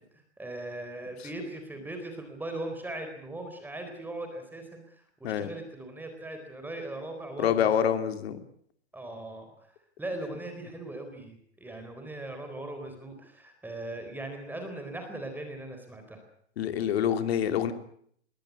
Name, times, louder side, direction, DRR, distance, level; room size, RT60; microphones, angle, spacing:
voice 1, 0.4-7.9 8.9-9.7 10.0-16.2, right 2 dB, 5° right, 5 dB, 4.1 m, -39 dB
voice 2, 7.4-8.4 16.6-17.7, left 9 dB, 60° left, 9 dB, 2.8 m, -26 dB
22.0 x 18.0 x 8.4 m, 0.65 s
hypercardioid pair, 135°, 34 cm